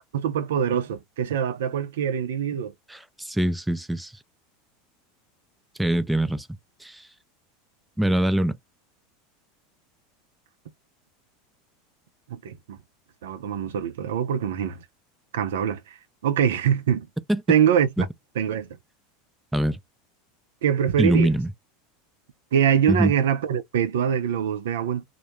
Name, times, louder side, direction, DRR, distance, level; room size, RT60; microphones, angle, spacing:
voice 1, 0.1-2.7 12.3-12.8 13.2-14.8 15.3-17.1 17.5-17.9 18.4-18.8 20.6-21.3 22.5-25.0, right 9 dB, 75° right, 0.5 m, -24 dB
voice 2, 2.9-4.1 5.8-6.5 6.8-7.1 8.0-8.6 17.3-17.4 18.0-18.1 19.5-19.8 21.0-21.5 22.9-23.1, right 1 dB, 5° right, 0.4 m, -23 dB
2.2 x 2.0 x 2.9 m
hypercardioid pair, 90°, 0 cm